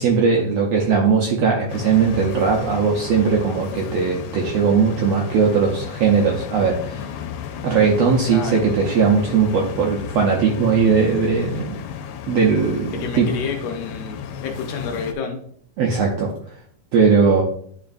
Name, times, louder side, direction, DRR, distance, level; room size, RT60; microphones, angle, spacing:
voice 1, 0.0-7.0 7.6-11.8 12.3-13.3 15.8-16.3 16.9-17.4, right 5 dB, 75° right, 0 dB, 1.5 m, -19 dB
sound 1, 1.7-15.1, left 8 dB, 90° left, 2.2 m, -33 dB
voice 2, 8.3-8.6 12.9-15.4, left 5 dB, 75° left, 3 dB, 2.1 m, -29 dB
10.5 x 3.5 x 2.5 m, 0.62 s
omnidirectional pair, 3.8 m